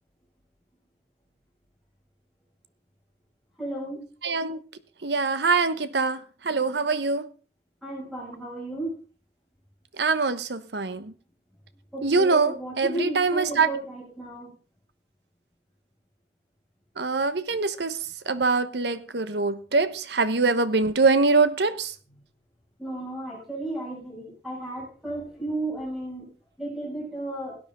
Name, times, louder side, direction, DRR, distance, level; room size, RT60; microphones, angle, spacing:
voice 1, 3.6-4.0 7.8-8.9 11.9-14.5 22.8-26.3 26.6-27.6, right 2 dB, ahead, 6.5 m, -33 dB
voice 2, 4.2-4.6 5.0-7.3 10.0-11.1 12.0-13.7 17.0-18.0 18.3-21.9, right 4 dB, 70° right, 1.0 m, -24 dB
17.0 x 10.0 x 3.8 m
head